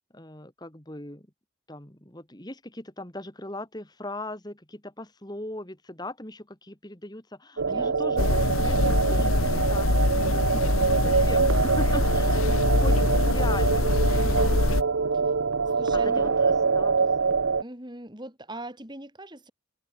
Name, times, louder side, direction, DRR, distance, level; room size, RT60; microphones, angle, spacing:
voice 1, 0.1-1.3 1.7-10.1 10.4-14.2 15.9-17.3, left 1 dB, 20° left, 2.5 m, -39 dB
sound 1, 7.6-17.6, right 5 dB, 75° right, 0.8 m, -25 dB
voice 2, 7.7-8.2 14.1-14.5 15.8-16.4 17.6-19.5, right 1 dB, 20° right, 3.9 m, -41 dB
sound 2, 8.2-14.8, left 2 dB, 80° left, 1.1 m, -24 dB
head